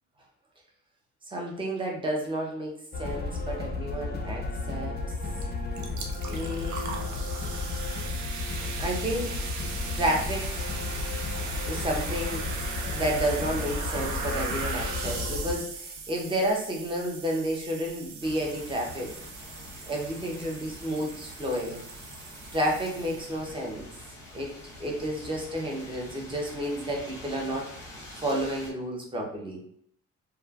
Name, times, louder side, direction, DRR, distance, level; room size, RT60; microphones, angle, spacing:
voice 1, 1.3-5.0 6.3-7.1 8.8-9.3 9.9-10.7 11.7-12.5 12.9-19.1 19.9-21.8 22.5-23.9 24.3-27.7 28.2-29.6, right 1 dB, 15° right, -1 dB, 0.8 m, -31 dB
sound 1, 2.9-15.6, left 3 dB, 35° left, 0.5 m, -33 dB
sound 2, 5.4-5.5 5.7-23.5, right 4 dB, 70° right, 0.6 m, -38 dB
sound 3, 18.2-28.7, left 1 dB, 10° left, 0.9 m, -46 dB
3.0 x 2.3 x 2.4 m, 0.66 s
cardioid pair, 90°, 30 cm